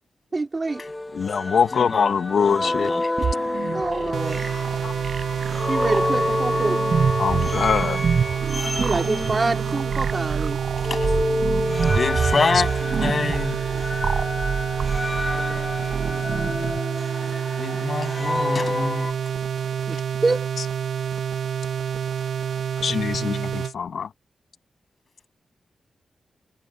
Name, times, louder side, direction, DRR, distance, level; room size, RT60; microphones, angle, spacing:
voice 1, 0.3-0.8 3.7-4.4 5.7-6.8 8.8-10.6 19.9-20.5, right 3 dB, 35° right, 3.5 m, -26 dB
sound 1, 0.7-10.4 10.8-19.1, left 2 dB, 20° left, 1.6 m, -29 dB
voice 2, 1.1-2.9 4.8-4.9 7.2-8.0 10.5-10.9 22.8-24.1, left 6 dB, 75° left, 1.6 m, -23 dB
voice 3, 1.7-3.1 10.8-11.1 11.9-13.6 17.6-19.2, left 4 dB, 50° left, 7.5 m, -27 dB
sound 2, 3.2-16.8, right 6 dB, 65° right, 7.1 m, -28 dB
sound 3, 4.1-23.7, right 8 dB, 80° right, 1.1 m, -28 dB
cardioid pair, 80°, 0 cm